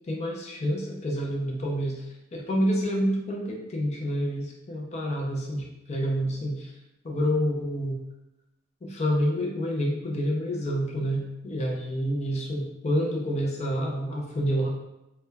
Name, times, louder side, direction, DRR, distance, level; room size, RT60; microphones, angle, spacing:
voice 1, 0.1-2.1 2.3-6.7 7.0-8.0 8.8-14.7, equal, 35° left, -1 dB, 0.4 m, -28 dB
2.1 x 2.1 x 3.2 m, 0.91 s
head